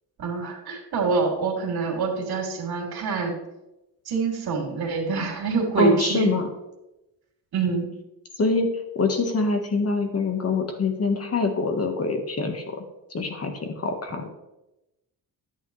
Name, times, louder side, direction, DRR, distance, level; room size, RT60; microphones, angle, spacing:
voice 1, 0.2-3.4 4.1-6.3 7.5-7.9, right 4 dB, 70° right, 0 dB, 2.9 m, -25 dB
voice 2, 5.8-6.4 8.4-8.7 8.9-12.8 13.1-13.5 13.8-14.3, left 3 dB, 35° left, 5 dB, 1.4 m, -24 dB
11.0 x 8.8 x 3.2 m, 0.95 s
cardioid pair, 100°, 40 cm